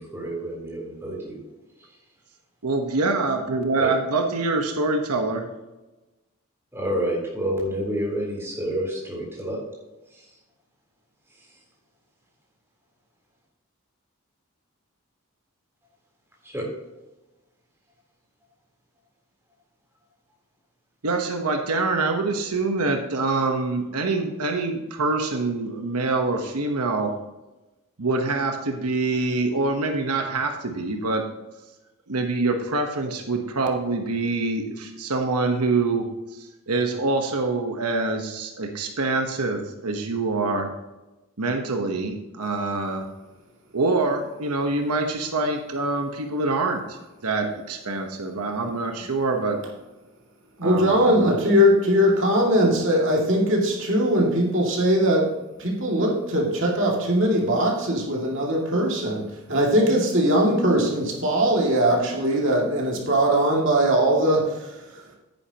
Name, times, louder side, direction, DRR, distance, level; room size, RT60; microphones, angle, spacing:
voice 1, 0.0-1.4 3.8-3.9 6.7-9.6 10.1-10.2 16.4-16.7, equal, 10° right, -3 dB, 3.6 m, -29 dB
voice 2, 2.6-5.5 21.0-27.1 28.0-31.2 32.1-40.7 41.4-43.1 43.7-49.6 50.6-51.3, right 3 dB, 90° right, 4 dB, 1.1 m, -25 dB
voice 3, 50.6-55.3 55.6-64.5, equal, 55° right, -1 dB, 2.3 m, -20 dB
10.0 x 9.9 x 2.9 m, 1.1 s
head